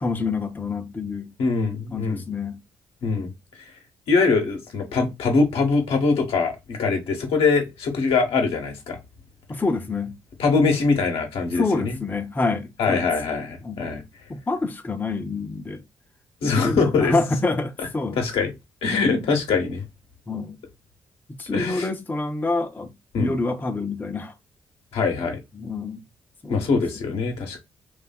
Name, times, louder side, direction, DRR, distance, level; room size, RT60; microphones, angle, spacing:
voice 1, 0.0-1.3 1.9-2.6 9.5-10.2 11.5-13.1 13.6-13.9 14.3-15.8 16.4-18.2 18.9-19.2 20.3-20.6 21.4-22.9 23.2-24.3 25.5-26.0 26.4-26.7 27.1-27.2, left 3 dB, 20° left, 0.5 m, -27 dB
voice 2, 1.4-2.2 3.0-3.3 4.1-9.0 10.4-12.0 12.8-14.0 16.4-17.1 18.2-18.5 18.8-19.8 21.5-21.9 23.1-23.4 24.9-25.4 26.5-27.6, left 4 dB, 65° left, 0.8 m, -22 dB
2.7 x 2.2 x 2.2 m
hypercardioid pair, 40°, 10 cm